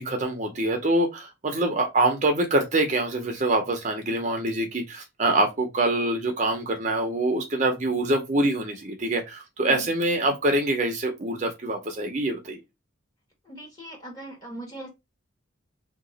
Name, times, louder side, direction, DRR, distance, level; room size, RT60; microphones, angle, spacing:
voice 1, 0.0-12.6, right 2 dB, 35° right, 0.6 m, -25 dB
voice 2, 13.4-14.9, right 1 dB, 20° left, 1.2 m, -40 dB
2.8 x 2.3 x 3.9 m
head